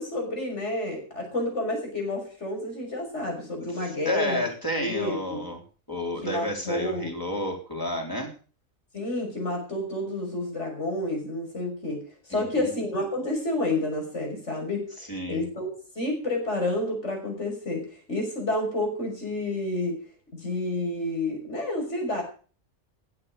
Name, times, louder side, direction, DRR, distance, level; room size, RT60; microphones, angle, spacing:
voice 1, 0.0-4.5 4.8-5.4 6.2-7.1 8.9-12.0 12.3-14.8 15.3-15.7 15.9-20.0 20.4-22.2, left 2 dB, 55° left, 1 dB, 6.5 m, -29 dB
voice 2, 3.7-5.6 5.9-8.3 12.3-12.7 15.1-15.4, left 1 dB, 15° left, 0 dB, 4.0 m, -31 dB
15.5 x 9.0 x 6.7 m, 0.38 s
omnidirectional pair, 1.4 m